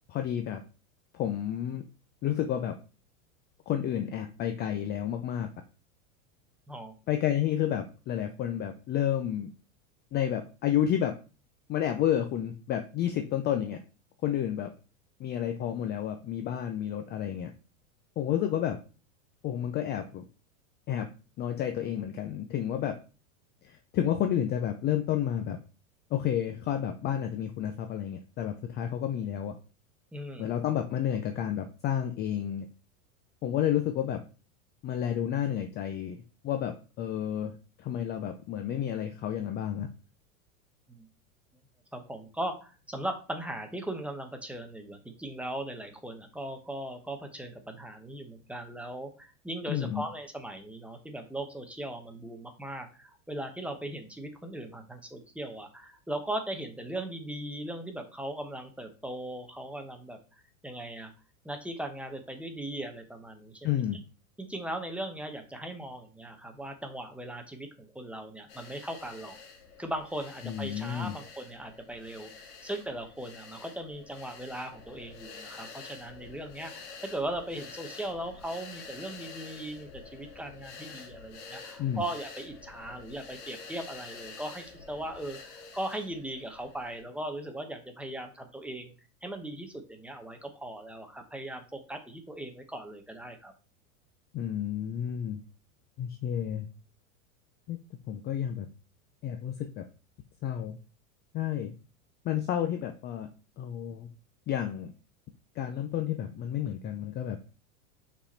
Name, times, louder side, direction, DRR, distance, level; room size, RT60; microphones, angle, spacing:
voice 1, 0.1-0.6 1.1-1.8 2.2-2.8 3.7-5.5 7.1-9.5 10.1-11.2 11.7-13.8 14.2-14.7 15.2-17.5 18.2-18.8 19.4-20.2 20.9-21.1 21.4-23.0 23.6-25.6 26.1-29.6 30.4-32.7 33.4-34.3 34.8-36.2 36.4-37.5 37.8-39.9 49.7-50.1 63.6-64.0 70.4-71.2 81.8-82.0 94.3-95.4 96.0-96.7 97.7-97.8 98.1-98.7 99.2-99.9 100.4-100.8 101.3-101.7 102.2-103.3 103.6-104.1 104.5-104.9 105.6-107.4, left 10 dB, 25° left, 7 dB, 0.5 m, -30 dB
voice 2, 30.1-30.5 40.9-41.1 41.9-60.2 60.6-61.1 61.4-63.7 64.4-69.4 69.8-88.9 89.2-93.5, right 1 dB, 5° right, 5 dB, 0.9 m, -38 dB
sound 1, 68.5-87.0, left 5 dB, 60° left, 2.1 m, -48 dB
5.6 x 4.3 x 4.2 m, 0.34 s
hypercardioid pair, 125°, 41 cm